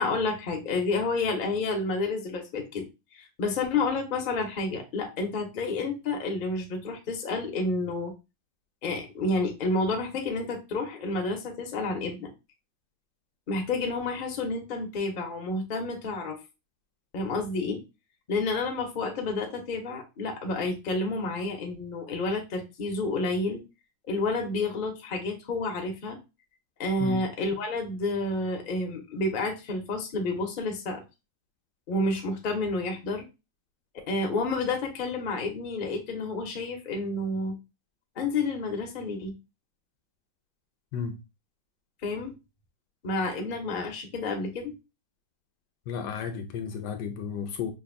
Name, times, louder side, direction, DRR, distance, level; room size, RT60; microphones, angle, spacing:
voice 1, 0.0-2.8 3.1-8.1 8.8-12.3 13.5-16.4 17.1-17.8 18.3-23.6 24.1-26.2 26.8-31.0 31.9-33.2 34.1-37.5 38.2-39.3 42.0-42.3 43.0-44.7, left 3 dB, 50° left, 0.6 m, -30 dB
voice 2, 45.9-47.7, left 6 dB, 75° left, 1.1 m, -33 dB
5.1 x 2.5 x 2.5 m
omnidirectional pair, 2.0 m